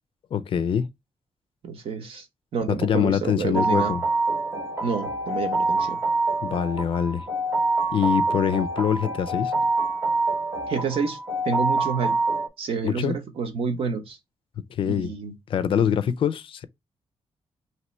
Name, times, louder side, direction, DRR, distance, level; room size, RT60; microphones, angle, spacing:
voice 1, 0.3-0.9 2.7-4.0 6.4-7.3 7.9-9.5 12.8-13.2 14.8-15.1 15.5-16.6, left 8 dB, 60° left, 0.4 m, -24 dB
voice 2, 1.6-2.2 2.5-3.9 4.8-6.0 9.6-9.7 10.7-11.2 11.4-12.2 12.6-14.2 14.9-15.3, right 5 dB, 65° right, 1.0 m, -29 dB
sound 1, 3.5-12.5, right 2 dB, 30° right, 0.9 m, -26 dB
3.0 x 2.9 x 4.3 m
wide cardioid pair, 155°, 10 cm